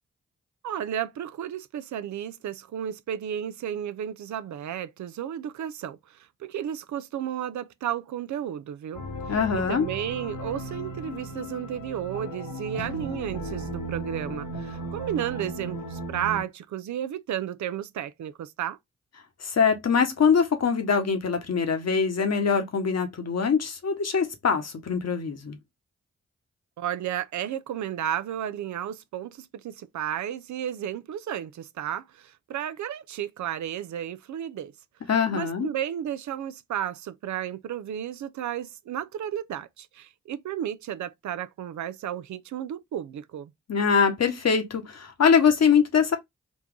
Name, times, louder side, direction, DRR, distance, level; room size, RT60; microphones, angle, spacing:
voice 1, 0.6-9.1 9.5-18.8 26.8-34.7 35.3-43.5, right 10 dB, 70° right, 0.5 m, -33 dB
sound 1, 8.9-16.4, right 1 dB, 80° left, 1.4 m, -36 dB
voice 2, 9.3-9.9 19.4-25.6 35.1-35.7 43.7-46.2, left 6 dB, 60° left, 1.2 m, -23 dB
4.1 x 2.3 x 3.6 m
supercardioid pair, 40°, 30 cm